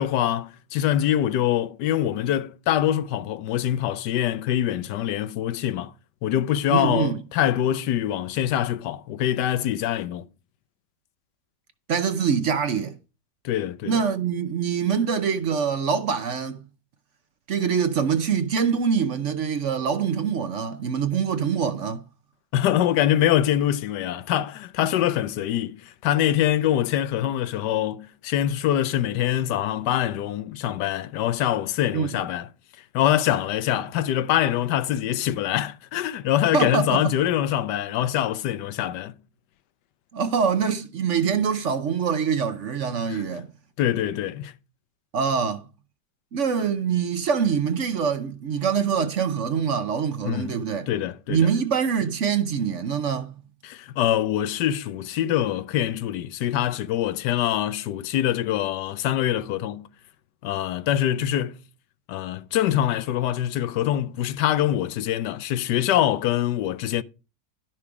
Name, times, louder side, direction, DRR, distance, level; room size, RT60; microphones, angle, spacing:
voice 1, 0.0-5.9 6.2-10.2 13.4-14.0 22.5-32.5 32.9-39.1 43.1-43.2 43.8-44.5 50.2-50.6 50.9-51.4 53.6-59.9 60.4-61.6 62.1-67.0, left 11 dB, 85° left, 1.3 m, -24 dB
voice 2, 6.7-7.2 11.9-13.0 13.8-16.6 17.5-22.0 31.9-32.1 36.5-37.0 40.1-43.5 45.1-45.7 46.3-50.9 51.3-53.3, right 6 dB, 55° right, 1.0 m, -24 dB
11.5 x 6.0 x 4.8 m
omnidirectional pair, 1.8 m